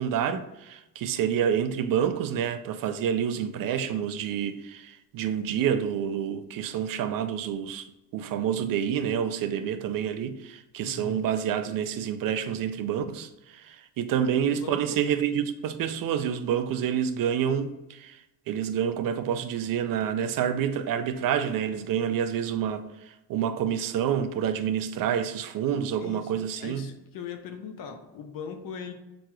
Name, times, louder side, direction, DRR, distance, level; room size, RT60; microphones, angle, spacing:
voice 1, 0.0-7.9 8.1-26.9, right 8 dB, 60° right, 0.5 m, -28 dB
voice 2, 10.8-11.3 14.5-15.0 26.0-26.3 26.6-28.9, left 6 dB, 60° left, 0.7 m, -39 dB
6.1 x 2.9 x 2.3 m
cardioid pair, 85°, 39 cm